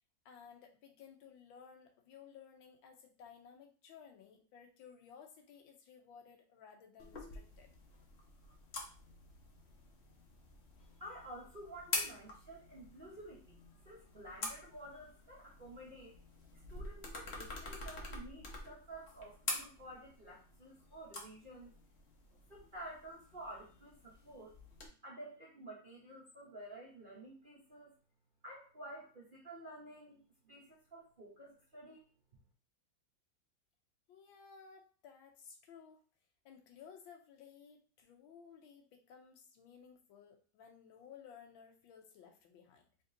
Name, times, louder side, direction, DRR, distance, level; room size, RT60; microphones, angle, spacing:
voice 1, 0.2-7.7 34.1-36.0 36.4-43.0, left 7 dB, 90° left, 4 dB, 1.5 m, -57 dB
sound 1, 7.0-24.9, left 2 dB, 55° left, 0.7 m, -47 dB
voice 2, 11.0-13.6 13.8-16.2 16.5-21.7 22.3-24.6 25.0-28.0 28.4-32.1, right 1 dB, 45° right, -4 dB, 0.7 m, -51 dB
3.8 x 3.5 x 2.7 m, 0.39 s
omnidirectional pair, 2.1 m